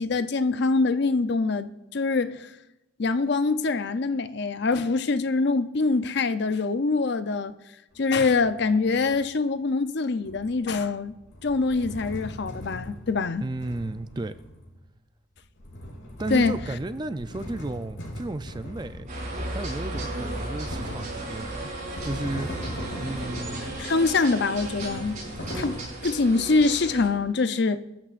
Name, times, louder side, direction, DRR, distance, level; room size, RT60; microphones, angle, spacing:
voice 1, 0.0-2.5 3.0-7.5 8.0-11.1 11.4-13.4 16.3-16.6 23.8-25.2 25.5-27.8, left 3 dB, 55° left, 0.6 m, -24 dB
sound 1, 7.9-9.3 10.2-14.8 15.4-25.8, equal, 75° left, 5.1 m, -40 dB
voice 2, 13.4-14.4 16.2-19.1 19.5-21.7 22.0-23.8, right 2 dB, 20° right, 0.4 m, -33 dB
sound 2, 19.1-27.1, right 2 dB, 40° right, 5.9 m, -35 dB
25.5 x 13.5 x 2.5 m
head